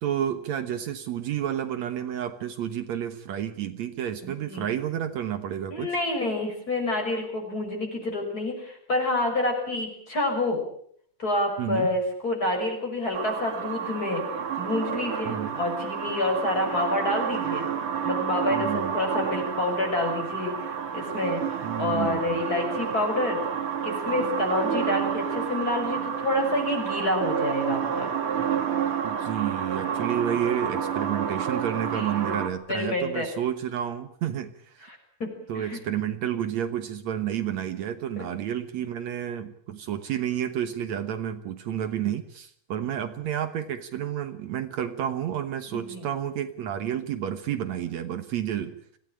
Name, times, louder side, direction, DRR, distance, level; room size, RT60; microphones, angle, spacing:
voice 1, 0.0-5.9 11.6-11.9 15.3-15.5 18.5-18.9 21.6-22.2 29.0-34.9 35.5-48.8, right 10 dB, 70° right, 9 dB, 2.4 m, -30 dB
voice 2, 4.2-4.7 5.7-10.6 11.2-14.2 14.6-17.7 18.0-21.4 21.8-23.4 23.8-28.1 31.7-32.4 32.7-33.3 34.8-35.3 35.5-35.8 38.2-38.3 45.7-46.1, left 2 dB, 30° left, 2 dB, 6.5 m, -28 dB
sound 1, 13.1-32.5, right 8 dB, 50° right, 2.8 m, -30 dB
26.0 x 16.5 x 8.9 m, 0.64 s
omnidirectional pair, 3.5 m